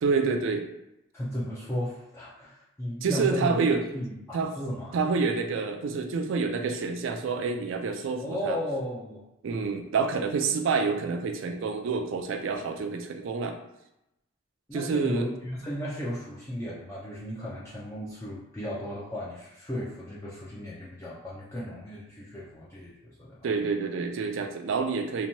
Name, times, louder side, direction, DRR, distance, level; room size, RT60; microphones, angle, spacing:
voice 1, 0.0-0.7 3.0-3.8 4.3-4.5 4.9-8.6 9.4-13.5 14.7-15.2 23.4-25.3, right 4 dB, 65° right, 5 dB, 0.3 m, -28 dB
voice 2, 1.1-3.6 3.9-5.0 8.2-9.2 14.7-23.4, equal, 15° left, -7 dB, 0.4 m, -35 dB
2.9 x 2.1 x 2.7 m, 0.88 s
head